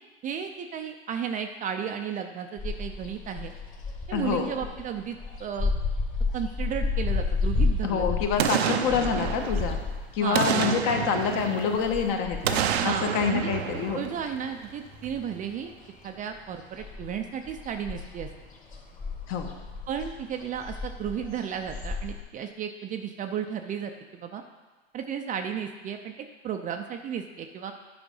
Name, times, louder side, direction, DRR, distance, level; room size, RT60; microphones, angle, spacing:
voice 1, 0.2-3.5 4.1-5.7 6.3-8.1 10.2-10.5 12.8-13.5 13.9-15.7 16.0-18.3 19.9-24.4 24.9-26.2 26.4-27.7, right 8 dB, 25° right, 6 dB, 0.5 m, -34 dB
sound 1, 2.6-14.2 14.5-15.8 16.0-22.2, left 3 dB, 25° left, 1.5 m, -32 dB
voice 2, 4.1-4.6 7.8-9.8 10.1-14.0 19.3-19.5, left 6 dB, 45° left, 4 dB, 1.3 m, -27 dB
Boom, 8.4-9.9 10.3-12.0 12.4-14.7 15.1-15.2, right 9 dB, 80° right, 0.7 m, -29 dB
10.0 x 5.0 x 5.5 m, 1.2 s
hypercardioid pair, 110°, 31 cm